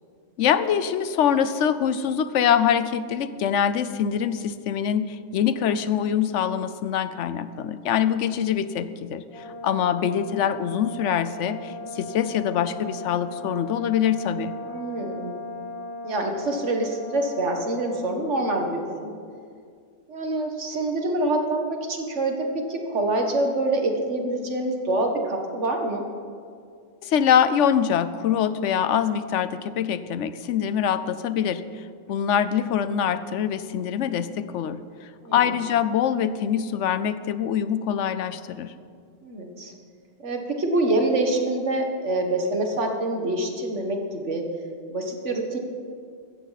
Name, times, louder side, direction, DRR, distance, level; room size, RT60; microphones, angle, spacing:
voice 1, 0.4-14.5 27.0-34.8 35.3-38.7, left 8 dB, 85° left, 13 dB, 1.0 m, -24 dB
Brass instrument, 9.3-18.2, left 2 dB, 55° left, 3.1 m, -37 dB
voice 2, 14.7-15.4 16.0-19.1 20.1-22.4 22.7-26.0 35.2-35.5 39.2-39.7 40.2-44.4 44.9-45.6, right 2 dB, 85° right, 3 dB, 1.9 m, -26 dB
15.5 x 14.0 x 4.1 m, 2.2 s
omnidirectional pair, 1.2 m